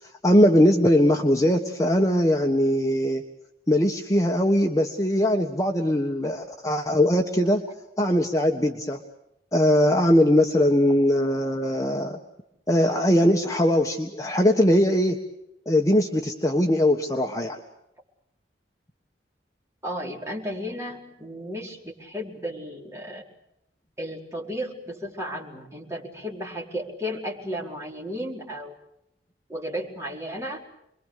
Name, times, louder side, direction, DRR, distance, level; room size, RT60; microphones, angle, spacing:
voice 1, 0.2-3.2 3.7-7.6 8.0-9.0 9.5-12.2 12.7-15.2 15.7-17.6, left 1 dB, 20° left, 2 dB, 1.4 m, -21 dB
voice 2, 19.8-23.2 24.0-28.7 29.5-30.6, equal, 15° right, -1 dB, 4.7 m, -34 dB
29.0 x 22.5 x 6.7 m, 0.81 s
head